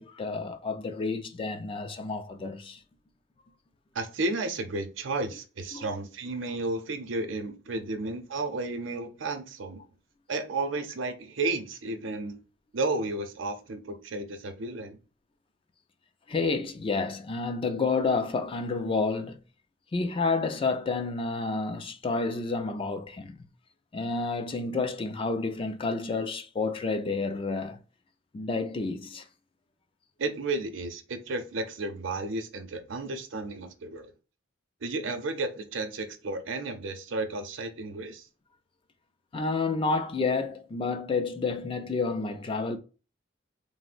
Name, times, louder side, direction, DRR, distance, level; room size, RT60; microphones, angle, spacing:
voice 1, 0.0-2.8 5.7-5.9 16.3-19.4 19.9-23.5 23.9-27.8 28.3-29.2 39.3-42.8, left 4 dB, 30° left, 0.3 m, -30 dB
voice 2, 3.9-9.8 10.3-12.4 12.7-15.0 30.2-34.1 34.8-38.2, right 2 dB, 85° right, 0.6 m, -33 dB
3.5 x 2.1 x 2.4 m
head